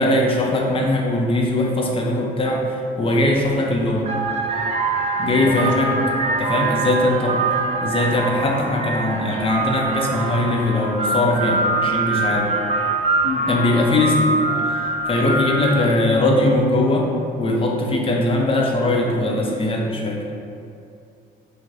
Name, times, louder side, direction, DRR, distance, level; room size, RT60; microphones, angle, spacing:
voice 1, 0.0-4.1 5.2-5.9 6.4-7.4 7.8-12.5 13.5-14.3 14.6-17.1 17.4-20.2, left 1 dB, 30° left, 0 dB, 0.6 m, -20 dB
sound 1, 3.4-3.6 4.0-16.1, right 3 dB, 30° right, 0.4 m, -24 dB
voice 2, 5.4-6.0 13.2-13.6, left 4 dB, 70° left, -1 dB, 0.6 m, -29 dB
4.8 x 2.8 x 2.6 m, 2.5 s
cardioid pair, 90°, 20 cm